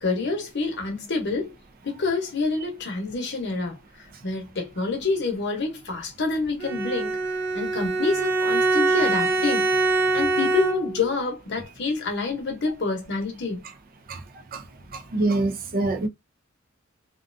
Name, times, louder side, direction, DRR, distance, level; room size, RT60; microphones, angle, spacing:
voice 1, 0.0-1.5 1.8-7.2 7.5-9.7 10.1-13.7, left 3 dB, 55° left, 0.8 m, -27 dB
Bowed string instrument, 6.6-11.1, right 3 dB, 60° right, 1.0 m, -23 dB
voice 2, 15.1-16.1, right 2 dB, 45° right, 0.4 m, -24 dB
2.5 x 2.2 x 2.5 m
head